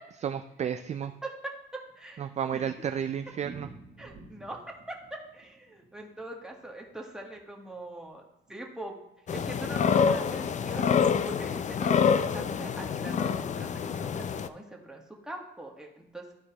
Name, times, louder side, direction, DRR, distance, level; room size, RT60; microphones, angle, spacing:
voice 1, 0.2-1.1 2.2-3.7, right 8 dB, 35° right, 9 dB, 0.3 m, -32 dB
voice 2, 1.2-1.5 2.0-2.7 4.0-8.2 8.5-9.0 9.3-16.3, right 1 dB, 5° right, 0 dB, 1.5 m, -42 dB
Thunder, 1.5-7.8 8.1-8.2 8.5-8.6 8.8-8.9 9.5-9.8, right 3 dB, 60° right, 1.6 m, -52 dB
sound 1, 9.3-14.5, left 6 dB, 35° left, 0.4 m, -27 dB
12.5 x 4.3 x 3.0 m, 0.90 s
cardioid pair, 95°, 20 cm